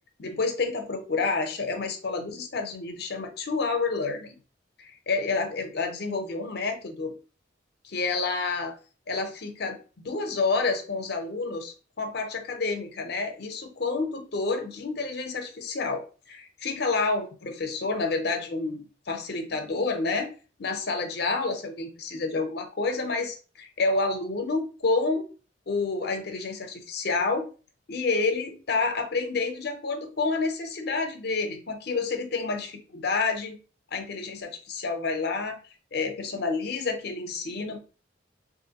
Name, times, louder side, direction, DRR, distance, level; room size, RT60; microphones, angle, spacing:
voice 1, 0.2-4.4 4.8-7.1 7.8-8.7 9.1-20.3 20.6-25.3 25.7-27.5 27.9-33.6 33.9-35.6 35.9-37.8, left 3 dB, 55° left, 6 dB, 0.6 m, -29 dB
3.4 x 2.5 x 2.8 m, 0.36 s
head